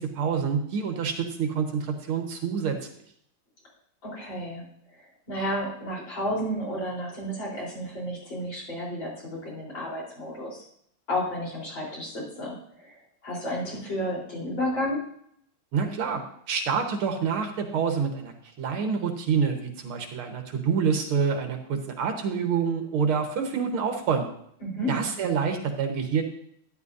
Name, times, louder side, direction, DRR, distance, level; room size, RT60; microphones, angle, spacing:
voice 1, 0.0-2.8 15.7-16.2 16.5-18.3 18.6-24.3 24.9-26.2, right 6 dB, 80° right, 4 dB, 2.2 m, -27 dB
voice 2, 4.0-4.7 4.9-10.6 11.1-15.0 24.6-24.9, equal, 60° left, -4 dB, 4.8 m, -32 dB
12.5 x 10.5 x 2.7 m, 0.68 s
omnidirectional pair, 2.3 m